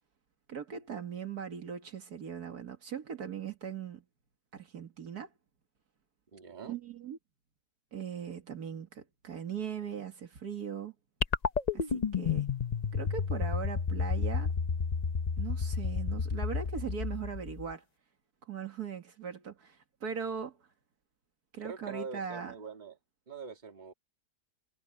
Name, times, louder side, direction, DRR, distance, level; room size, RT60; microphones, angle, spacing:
voice 1, 0.5-4.0 4.5-5.3 6.7-7.2 7.9-10.9 11.7-12.5 12.9-14.5 15.4-17.8 18.5-20.6 21.5-22.5, right 7 dB, 70° right, 2.2 m, -39 dB
voice 2, 6.3-6.8 21.6-23.0 23.3-23.9, right 5 dB, 25° right, 2.0 m, -43 dB
sound 1, 11.2-17.7, left 5 dB, 45° left, 0.5 m, -31 dB
omnidirectional pair, 1.7 m